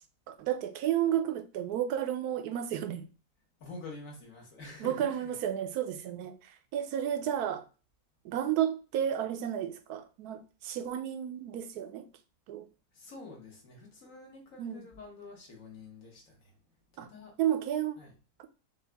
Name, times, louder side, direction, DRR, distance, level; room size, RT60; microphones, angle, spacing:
voice 1, 0.3-3.1 4.8-7.6 8.2-12.1 12.5-12.7 14.6-14.8 17.0-17.1 17.4-18.0, right 10 dB, 80° right, 1.1 m, -32 dB
voice 2, 3.6-5.3 12.9-16.6 16.9-17.4 18.0-18.1, left 3 dB, 60° left, 1.7 m, -47 dB
6.2 x 2.4 x 3.4 m
omnidirectional pair, 1.6 m